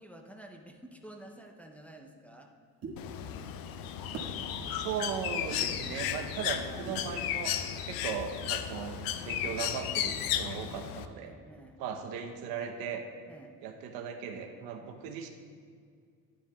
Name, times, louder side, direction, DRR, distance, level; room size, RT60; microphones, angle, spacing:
voice 1, 0.0-2.5 11.2-11.8 13.3-13.5, right 1 dB, 5° left, 1 dB, 0.6 m, -50 dB
sound 1, 2.8-3.0 4.1-4.4 5.5-5.6 6.9-7.1, right 4 dB, 45° right, 1.7 m, -40 dB
Bird, 3.0-11.1, left 10 dB, 80° left, 0.5 m, -34 dB
voice 2, 4.6-9.0 9.2-11.3 11.8-13.0 13.6-15.3, right 7 dB, 85° right, 4 dB, 0.9 m, -38 dB
10.0 x 10.0 x 2.3 m, 2.1 s
cardioid pair, 120°, 34 cm